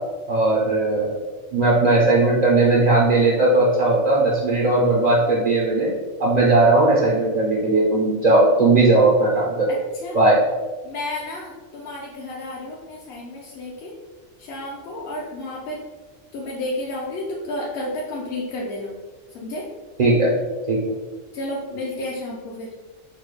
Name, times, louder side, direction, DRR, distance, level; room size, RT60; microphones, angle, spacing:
voice 1, 0.3-1.1 1.5-5.9 6.2-9.7 10.1-10.4 20.0-20.3 20.7-20.8, right 2 dB, 55° right, -4 dB, 0.4 m, -17 dB
voice 2, 9.7-10.2 10.8-13.9 14.4-15.8 16.3-18.9 19.3-19.7 21.3-22.7, left 1 dB, 60° left, -4 dB, 0.7 m, -31 dB
4.1 x 2.2 x 3.1 m, 1.3 s
omnidirectional pair, 1.4 m